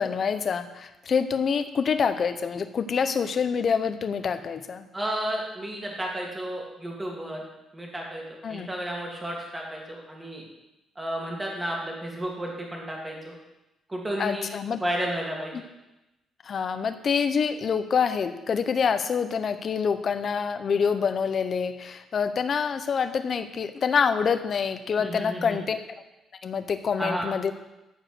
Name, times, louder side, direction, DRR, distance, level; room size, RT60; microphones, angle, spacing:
voice 1, 0.0-4.9 8.4-8.7 14.2-14.8 16.4-25.8 26.4-27.5, left 6 dB, 40° left, 10 dB, 0.7 m, -26 dB
voice 2, 4.9-7.4 7.7-8.2 8.5-10.4 11.0-13.4 13.9-14.5 14.8-15.5 25.0-25.6 27.0-27.3, right 1 dB, 10° right, -1 dB, 2.2 m, -32 dB
13.5 x 5.0 x 6.0 m, 0.97 s
cardioid pair, 160°, 0 cm